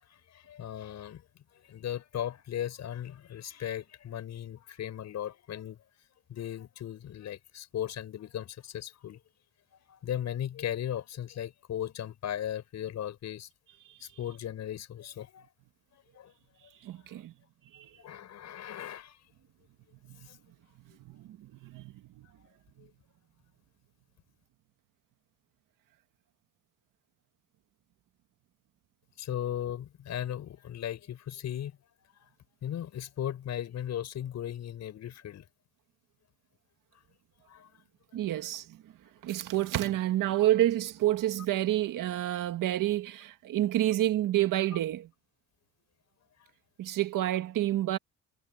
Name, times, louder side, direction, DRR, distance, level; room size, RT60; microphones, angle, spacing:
voice 1, 0.3-1.2 1.6-5.8 6.3-9.2 9.9-13.5 14.0-15.5 15.9-16.3 18.0-19.2 20.2-20.4 22.8-22.9 29.2-31.8 32.2-32.3 32.6-35.4 37.5-37.7, left 10 dB, 55° left, 6.7 m, -37 dB
voice 2, 16.8-17.3 17.7-17.9 20.1-20.2 21.1-22.3 38.1-38.8 39.2-45.1 46.8-48.0, right 13 dB, 75° right, 1.8 m, -29 dB
cardioid pair, 175°, 33 cm